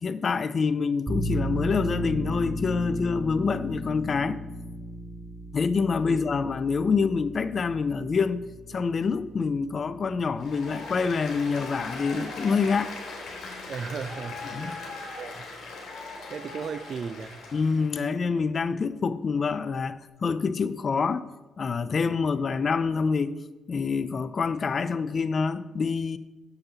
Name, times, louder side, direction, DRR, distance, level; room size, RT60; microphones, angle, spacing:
voice 1, 0.0-4.4 5.5-12.9 14.5-14.8 17.5-21.3 21.6-23.3 23.7-26.2, left 5 dB, 45° left, 0.4 m, -26 dB
sound 1, 1.1-12.4, equal, 10° right, 2.2 m, -35 dB
Applause, 10.4-17.9, left 3 dB, 65° left, 2.8 m, -39 dB
voice 2, 13.7-15.5 16.0-17.4, right 6 dB, 50° right, 0.4 m, -37 dB
8.0 x 7.1 x 3.9 m
cardioid pair, 90°, 0 cm